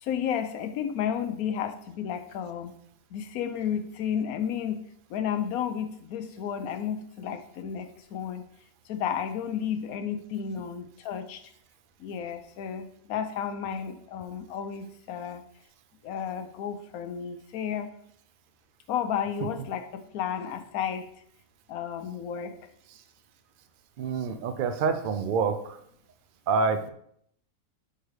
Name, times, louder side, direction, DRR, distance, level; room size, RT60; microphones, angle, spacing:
voice 1, 0.0-2.7 3.1-4.8 5.1-8.5 8.9-11.5 12.0-15.4 16.0-17.9 18.9-21.1 21.7-22.5, left 8 dB, 80° left, 10 dB, 1.1 m, -32 dB
voice 2, 24.0-25.6 26.5-26.9, right 5 dB, 85° right, 9 dB, 0.4 m, -26 dB
6.8 x 4.8 x 3.1 m, 0.68 s
omnidirectional pair, 1.5 m